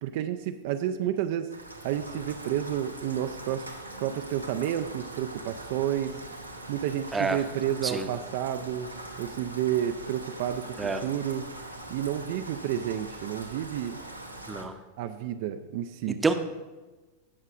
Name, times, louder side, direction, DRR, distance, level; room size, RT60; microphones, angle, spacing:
voice 1, 0.0-1.5 1.8-3.7 4.0-6.2 6.7-8.9 9.2-11.5 11.9-14.0 15.0-16.2, right 10 dB, 50° right, 8 dB, 0.4 m, -30 dB
Rain, 1.5-14.6, right 1 dB, 90° right, 1.0 m, -42 dB
voice 2, 7.1-7.4 7.8-8.1 10.8-11.0 14.5-14.7 16.1-16.3, right 4 dB, 15° right, 8 dB, 0.7 m, -27 dB
17.0 x 6.4 x 2.5 m, 1.2 s
figure-of-eight pair, 90°, 0 cm